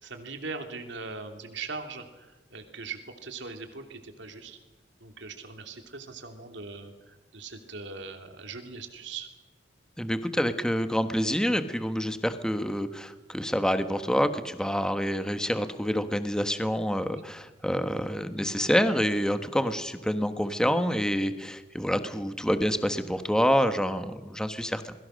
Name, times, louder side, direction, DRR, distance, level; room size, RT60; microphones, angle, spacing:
voice 1, 0.0-4.6 5.0-9.3, right 4 dB, 70° right, 5 dB, 3.0 m, -40 dB
voice 2, 10.0-24.9, equal, 5° left, 9 dB, 1.3 m, -27 dB
28.0 x 22.0 x 6.5 m, 1.1 s
head